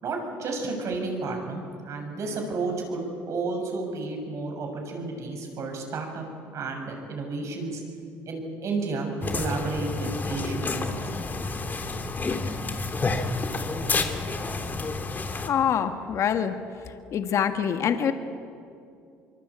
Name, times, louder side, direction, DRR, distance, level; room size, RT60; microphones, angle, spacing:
voice 1, 0.0-6.3 6.5-7.8 8.3-11.0, right 3 dB, 55° right, 2 dB, 7.0 m, -31 dB
sound 1, 9.2-15.5, left 3 dB, 30° left, 2.5 m, -29 dB
voice 2, 15.3-16.6 17.1-18.1, left 8 dB, 55° left, 7 dB, 1.7 m, -25 dB
24.5 x 24.0 x 8.5 m, 2.5 s
supercardioid pair, 85°, 6 cm